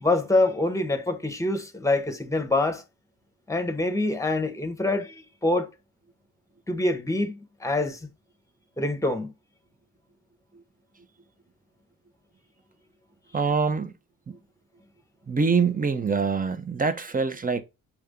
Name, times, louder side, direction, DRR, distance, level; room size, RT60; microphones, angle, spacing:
voice 1, 0.0-2.8 3.5-5.7 6.7-8.0 8.8-9.3 13.3-13.4, left 2 dB, 10° left, 0.9 m, -25 dB
voice 2, 13.3-13.9 14.3-14.4 15.3-17.6, right 5 dB, 25° right, 0.6 m, -24 dB
5.8 x 2.6 x 3.6 m
cardioid pair, 75°, 35 cm